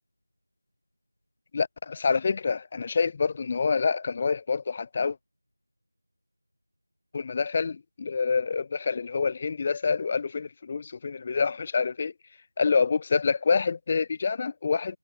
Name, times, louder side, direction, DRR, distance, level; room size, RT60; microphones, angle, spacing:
voice 1, 1.5-5.2 7.1-12.1 12.6-15.0, left 5 dB, 20° left, 3.0 m, -27 dB
figure-of-eight pair, 175°, 0 cm